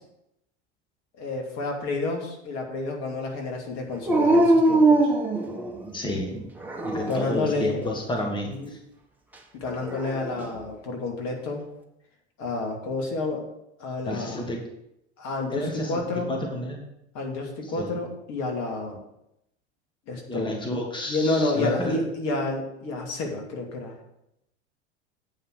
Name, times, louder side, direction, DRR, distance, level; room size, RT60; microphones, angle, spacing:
voice 1, 1.2-5.1 7.1-7.9 8.5-8.7 9.5-11.7 12.4-13.4 13.8-14.4 15.2-16.3 17.1-19.0 20.1-20.6 21.0-23.9, left 2 dB, 50° left, 1 dB, 2.5 m, -29 dB
Dog, 4.1-6.0 6.6-7.4 9.7-10.5, right 2 dB, 5° right, 1.5 m, -22 dB
voice 2, 5.9-6.5 6.8-8.8 14.0-14.6 15.5-16.8 17.7-18.0 20.3-22.0, left 1 dB, 15° left, 1 dB, 1.7 m, -31 dB
9.0 x 5.7 x 6.5 m, 0.83 s
hypercardioid pair, 85°, 34 cm